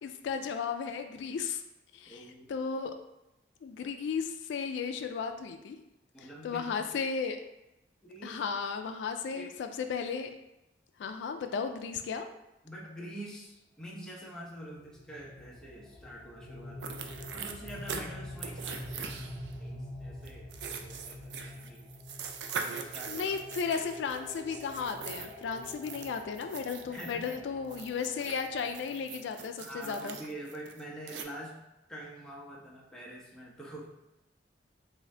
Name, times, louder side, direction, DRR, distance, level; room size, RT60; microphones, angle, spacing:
voice 1, 0.0-1.6 1.9-2.9 3.6-5.8 6.4-7.4 8.2-10.3 11.0-12.3 23.1-30.2, left 6 dB, 80° left, 6 dB, 0.3 m, -35 dB
voice 2, 2.1-2.5 6.1-6.7 8.0-8.4 9.3-9.5 12.6-17.0 17.3-21.9 22.5-23.4 23.6-23.7 25.2-25.3 26.8-27.3 29.6-31.6 31.9-33.9, right 1 dB, 5° left, -5 dB, 0.7 m, -46 dB
sound 1, 14.7-29.6, left 1 dB, 40° left, 0.8 m, -47 dB
sound 2, 16.8-18.0 18.4-19.5 20.2-27.4 27.7-31.2, right 6 dB, 70° right, 0.3 m, -42 dB
3.6 x 2.6 x 3.2 m, 0.93 s
head